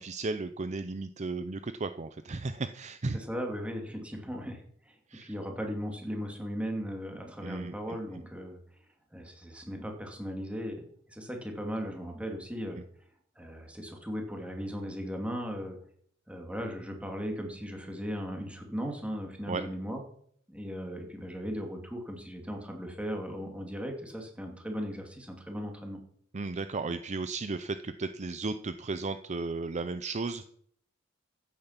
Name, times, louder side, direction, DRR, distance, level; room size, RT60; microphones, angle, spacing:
voice 1, 0.0-3.2 5.1-5.3 7.4-7.7 19.5-19.6 26.3-30.4, right 3 dB, 35° right, 11 dB, 0.6 m, -34 dB
voice 2, 3.1-4.6 5.2-8.6 9.1-10.8 11.1-12.8 13.4-15.8 16.3-20.0 20.5-26.0, equal, 5° right, 2 dB, 2.7 m, -37 dB
14.5 x 8.9 x 5.9 m, 0.63 s
head